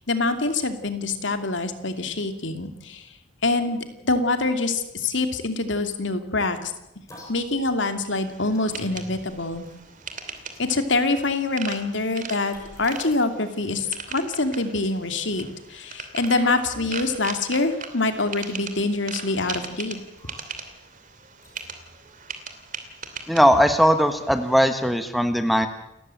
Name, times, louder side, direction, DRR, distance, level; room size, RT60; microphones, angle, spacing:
voice 1, 0.1-3.1 3.4-6.7 7.3-9.7 10.6-20.0, left 3 dB, 70° left, 8 dB, 2.7 m, -25 dB
sound 1, 7.1-10.9 11.6-11.8 12.5-13.2 13.7-14.3 15.0-15.5 16.3-17.4 17.6-17.7 18.1-19.6 19.8-20.8 21.4-22.1 22.4-22.5, left 1 dB, 15° left, 7.2 m, -47 dB
sound 2, 8.1-24.9, right 5 dB, 40° right, 2.7 m, -40 dB
voice 2, 23.3-25.7, equal, ahead, 8 dB, 1.4 m, -19 dB
29.0 x 14.0 x 9.1 m, 0.89 s
head